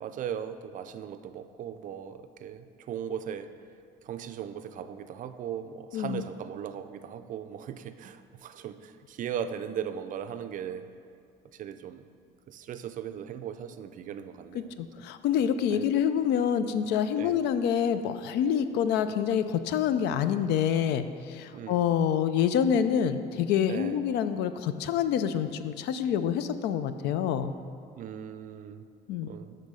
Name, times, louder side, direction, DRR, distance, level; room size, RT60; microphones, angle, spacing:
voice 1, 0.0-3.5 4.0-10.8 11.6-12.1 12.5-14.7 15.7-15.8 17.2-17.4 21.5-21.8 23.7-24.0 28.0-28.9 29.2-29.6, right 9 dB, 50° right, 10 dB, 0.4 m, -38 dB
voice 2, 14.5-27.5 29.1-29.3, left 8 dB, 80° left, 11 dB, 0.4 m, -27 dB
7.4 x 3.9 x 6.2 m, 2.3 s
cardioid pair, 110°, 17 cm